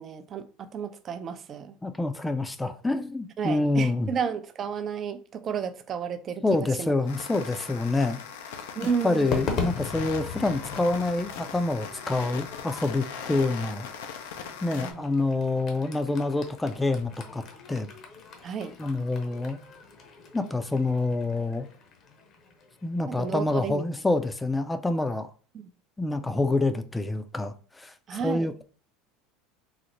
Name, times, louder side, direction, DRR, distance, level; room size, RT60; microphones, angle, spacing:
voice 1, 0.0-1.8 3.4-6.9 8.8-9.4 14.7-15.0 18.4-18.8 23.1-23.8 25.5-25.7 28.1-28.5, right 7 dB, 40° right, 0.4 m, -32 dB
voice 2, 1.8-4.1 6.4-8.2 9.0-13.9 14.6-17.4 17.7-17.9 18.8-19.6 20.3-21.7 22.8-25.3 26.0-27.9 28.2-28.6, left 2 dB, 10° left, 0.4 m, -27 dB
sound 1, 7.1-14.9, left 7 dB, 80° left, 0.5 m, -40 dB
Crowd / Fireworks, 9.3-23.7, left 5 dB, 50° left, 0.9 m, -39 dB
3.9 x 2.0 x 3.1 m
hypercardioid pair, 85°, 0 cm